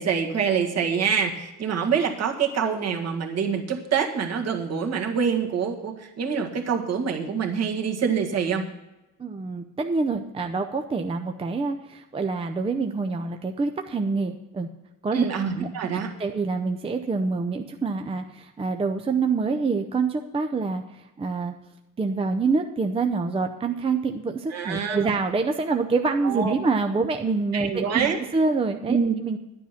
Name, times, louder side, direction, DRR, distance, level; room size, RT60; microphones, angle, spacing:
voice 1, 0.0-8.7 15.1-16.1 24.5-25.1 26.2-26.5 27.5-28.2 28.9-29.1, right 6 dB, 50° right, 1 dB, 1.8 m, -25 dB
voice 2, 9.2-14.7 15.0-15.2 15.6-15.7 16.2-21.5 22.0-28.1 28.3-29.4, right 4 dB, 15° right, 5 dB, 0.6 m, -26 dB
11.0 x 10.0 x 5.7 m, 0.97 s
cardioid pair, 140°, 33 cm